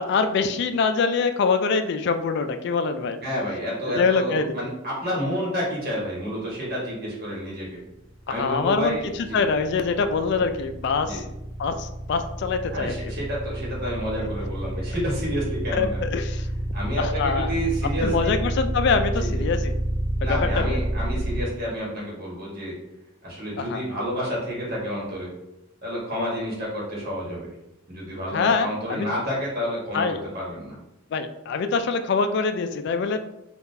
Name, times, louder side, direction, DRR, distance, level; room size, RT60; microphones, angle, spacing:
voice 1, 0.0-3.2 4.0-4.6 8.3-11.2 11.6-13.0 15.7-16.5 17.0-17.5 18.0-19.7 20.2-20.8 23.6-23.8 28.3-29.1 29.9-30.2 31.1-33.2, left 5 dB, 60° left, 9 dB, 0.3 m, -24 dB
voice 2, 3.2-7.8 8.3-9.4 11.0-11.2 12.7-16.0 16.7-18.4 19.2-19.3 20.2-22.7 23.2-25.3 25.8-27.5 27.9-30.8, equal, 50° right, -5 dB, 1.3 m, -29 dB
sound 1, 8.1-21.4, right 1 dB, 75° right, 0.5 m, -28 dB
3.7 x 2.4 x 2.7 m, 0.89 s
head